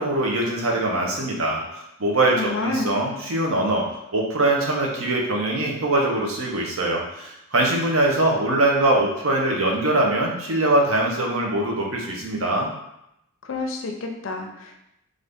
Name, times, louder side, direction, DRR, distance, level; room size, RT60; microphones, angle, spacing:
voice 1, 0.0-12.7, right 2 dB, 65° right, -1 dB, 0.7 m, -22 dB
voice 2, 2.3-3.0 13.5-14.7, left 3 dB, 60° left, 3 dB, 0.4 m, -29 dB
2.7 x 2.5 x 3.4 m, 0.82 s
head